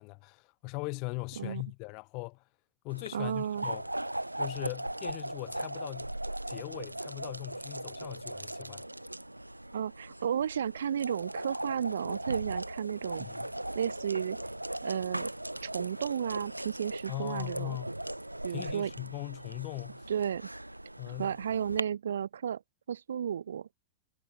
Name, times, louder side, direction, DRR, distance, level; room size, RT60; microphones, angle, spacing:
voice 1, 0.0-2.4 2.8-3.8 4.4-6.1 6.5-8.8 13.2-13.4 17.1-17.9 18.5-20.0 21.0-21.3, left 30 dB, 45° left, 2.6 m, -40 dB
sound 1, 2.9-21.8, right 1 dB, 85° right, 1.2 m, -39 dB
voice 2, 3.1-3.7 9.7-13.3 13.7-14.4 14.8-15.3 15.6-17.8 18.4-18.9 20.1-20.5 21.1-22.6 22.9-23.7, right 8 dB, 65° right, 0.4 m, -33 dB
figure-of-eight pair, 90°, 0 cm